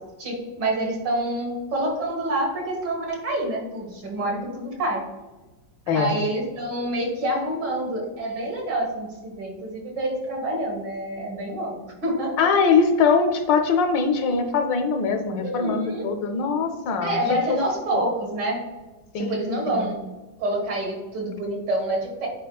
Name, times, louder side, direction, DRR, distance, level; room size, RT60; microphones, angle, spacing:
voice 1, 0.2-5.1 5.9-11.7 12.0-12.5 15.4-16.1 17.0-18.6 19.2-20.1 20.4-22.3, right 1 dB, 65° right, -1 dB, 2.1 m, -27 dB
voice 2, 12.4-17.4 17.9-18.0 19.1-19.9, left 5 dB, 75° left, 6 dB, 1.3 m, -22 dB
9.2 x 4.5 x 2.3 m, 1.2 s
omnidirectional pair, 2.1 m